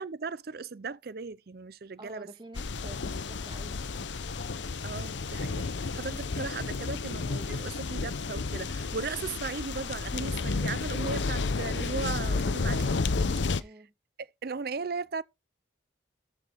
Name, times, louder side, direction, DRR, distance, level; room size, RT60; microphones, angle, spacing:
voice 1, 0.0-2.3 4.8-13.0 13.4-13.7 14.2-15.2, right 4 dB, 55° right, 0.5 m, -37 dB
voice 2, 2.0-4.1 9.3-9.4 13.6-13.9, right 1 dB, 25° right, 1.7 m, -49 dB
sound 1, 2.5-13.6, left 4 dB, 75° left, 0.7 m, -31 dB
13.0 x 4.5 x 5.0 m
head